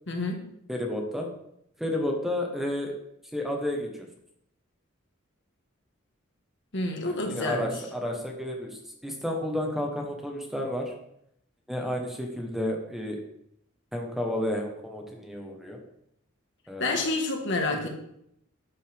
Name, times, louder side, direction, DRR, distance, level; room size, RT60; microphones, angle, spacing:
voice 1, 0.1-0.4 6.7-7.7 16.8-17.9, left 2 dB, 60° left, 3 dB, 1.7 m, -28 dB
voice 2, 0.7-1.3 1.8-2.9 3.3-4.1 7.1-10.9 11.7-13.2 13.9-15.8 16.7-17.0 17.7-17.9, left 1 dB, ahead, 1 dB, 1.3 m, -31 dB
11.0 x 7.9 x 3.6 m, 0.74 s
head